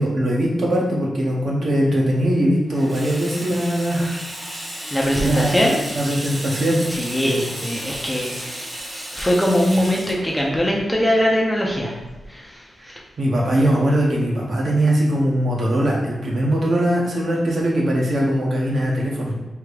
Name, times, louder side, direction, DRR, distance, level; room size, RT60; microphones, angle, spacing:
voice 1, 0.0-4.1 5.1-6.8 7.2-7.4 13.2-19.3, right 1 dB, 55° right, -3 dB, 1.0 m, -21 dB
Water tap faucet / Sink (filling or washing), 2.7-12.0, equal, 30° right, 1.0 m, -33 dB
voice 2, 4.9-5.8 6.5-6.6 6.9-8.7 9.2-12.0 12.3-13.0, equal, 5° left, -2 dB, 0.6 m, -21 dB
3.5 x 2.8 x 4.7 m, 1.2 s
wide cardioid pair, 170°, 0 cm